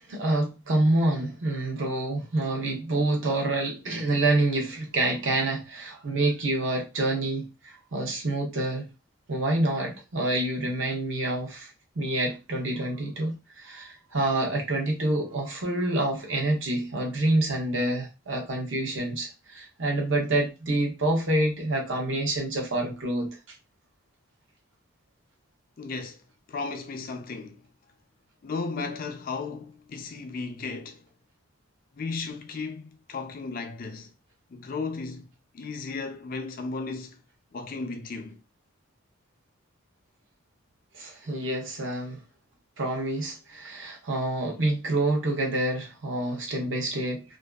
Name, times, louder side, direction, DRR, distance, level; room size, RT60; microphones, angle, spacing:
voice 1, 0.1-8.9 9.3-11.7 12.0-23.4 40.9-42.2 42.8-47.2, right 2 dB, 65° right, 0.8 m, -27 dB
voice 2, 25.8-26.2 26.5-27.6 28.4-31.0 32.0-34.1 34.5-37.2 37.5-38.4, left 4 dB, 40° left, 0.4 m, -35 dB
2.5 x 2.3 x 2.3 m
head